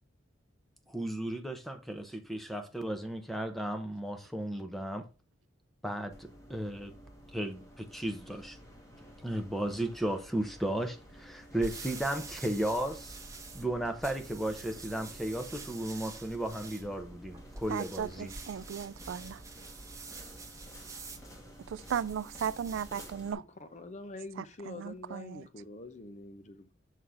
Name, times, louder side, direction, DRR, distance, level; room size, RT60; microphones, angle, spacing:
voice 1, 0.9-5.0 5.8-6.9 7.3-8.6 9.2-13.2 13.5-18.3, right 1 dB, ahead, 0.8 m, -35 dB
sound 1, 6.1-23.3, equal, 15° left, 1.3 m, -53 dB
sound 2, 11.3-23.2, right 3 dB, 15° right, 1.1 m, -47 dB
voice 2, 17.7-19.4 21.7-23.4 24.4-25.5, right 8 dB, 80° right, 0.3 m, -36 dB
voice 3, 23.3-26.7, left 2 dB, 35° left, 0.7 m, -45 dB
6.4 x 3.8 x 5.6 m
head